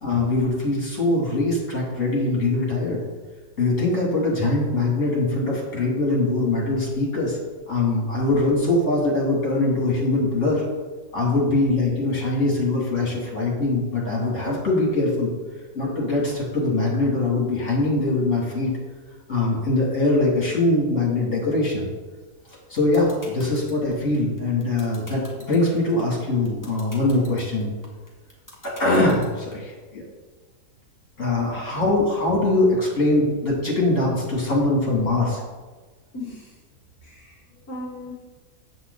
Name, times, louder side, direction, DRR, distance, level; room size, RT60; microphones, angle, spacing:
voice 1, 0.0-3.0 3.6-7.4 7.7-10.6 11.1-15.3 15.7-18.7 19.3-21.9 22.7-27.7 28.6-30.0 31.2-35.4, left 2 dB, 50° left, -4 dB, 3.5 m, -22 dB
sound 1, 22.5-29.5, left 1 dB, 10° left, 1.7 m, -44 dB
voice 2, 36.1-36.6 37.0-38.1, left 1 dB, 70° left, -2 dB, 1.9 m, -37 dB
8.6 x 8.1 x 4.2 m, 1.3 s
omnidirectional pair, 1.7 m